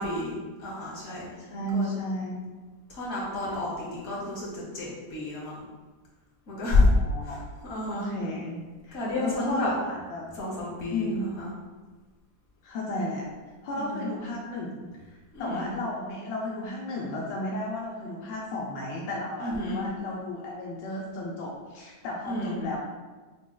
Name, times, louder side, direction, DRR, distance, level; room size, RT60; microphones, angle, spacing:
voice 1, 0.0-1.3 1.7-1.9 2.9-5.6 6.5-6.9 7.2-8.1 8.9-9.7 10.3-11.5 13.7-14.2 15.3-15.7 19.4-19.8 22.2-22.6, left 2 dB, 55° left, -6 dB, 1.7 m, -30 dB
voice 2, 1.4-2.4 6.7-7.4 7.9-8.6 8.8-10.4 10.9-11.2 12.6-13.3 13.6-22.8, left 1 dB, 85° left, -3 dB, 1.4 m, -34 dB
6.1 x 3.0 x 2.2 m, 1.3 s
omnidirectional pair, 1.9 m